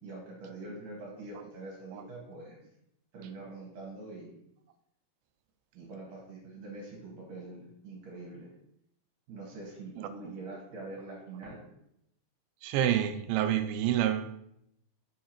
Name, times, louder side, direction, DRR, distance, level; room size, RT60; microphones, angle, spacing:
voice 1, 0.0-2.6 3.1-4.3 5.7-8.5 9.3-11.6, right 2 dB, 65° right, -4 dB, 3.3 m, -44 dB
voice 2, 12.6-14.3, right 11 dB, 90° right, 9 dB, 2.4 m, -28 dB
7.3 x 6.3 x 3.0 m, 0.77 s
omnidirectional pair, 4.2 m